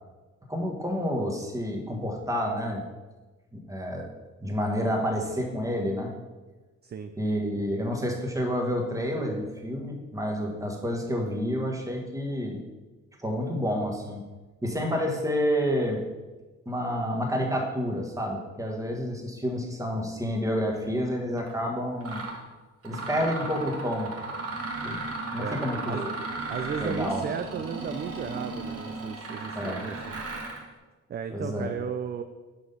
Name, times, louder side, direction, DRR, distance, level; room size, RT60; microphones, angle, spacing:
voice 1, 0.5-2.8 3.5-4.1 4.4-6.1 7.2-12.6 13.2-14.2 14.6-16.0 16.6-22.2 22.8-24.1 24.8-25.0 25.3-26.1 26.8-27.2 29.5-29.8 31.3-31.7, equal, 10° right, 1 dB, 1.6 m, -29 dB
voice 2, 6.8-7.1 25.4-26.1 26.5-30.2 31.1-32.2, right 7 dB, 35° right, 7 dB, 0.4 m, -35 dB
Mechanisms, 21.4-21.5 22.0-22.4 22.8-30.6, right 3 dB, 50° right, 1.5 m, -35 dB
6.2 x 5.1 x 5.5 m, 1.2 s
cardioid pair, 90°, 30 cm